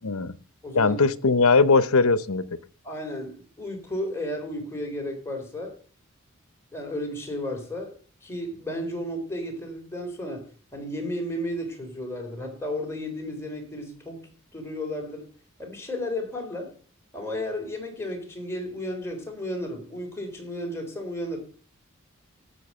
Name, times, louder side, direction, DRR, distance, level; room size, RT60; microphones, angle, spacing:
voice 1, 0.0-0.3 0.7-2.4, left 4 dB, 80° left, 0.8 m, -20 dB
voice 2, 0.6-1.0 2.8-5.7 6.7-7.9 8.2-15.3 15.6-16.7 17.1-21.4, left 1 dB, 10° left, 3.7 m, -33 dB
13.0 x 7.8 x 5.5 m
head